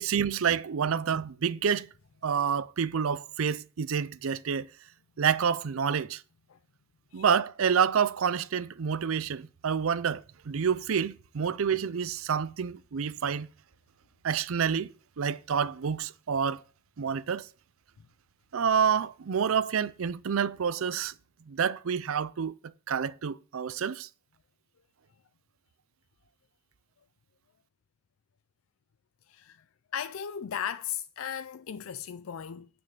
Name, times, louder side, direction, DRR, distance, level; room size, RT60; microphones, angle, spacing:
voice 1, 0.0-1.9 2.2-4.7 5.2-6.2 7.1-13.5 14.2-16.6 17.0-17.5 18.5-21.1 21.5-22.5 22.9-24.1, right 7 dB, 85° right, 0.5 m, -28 dB
voice 2, 29.9-32.7, left 8 dB, 85° left, 0.4 m, -36 dB
9.2 x 6.3 x 6.6 m
head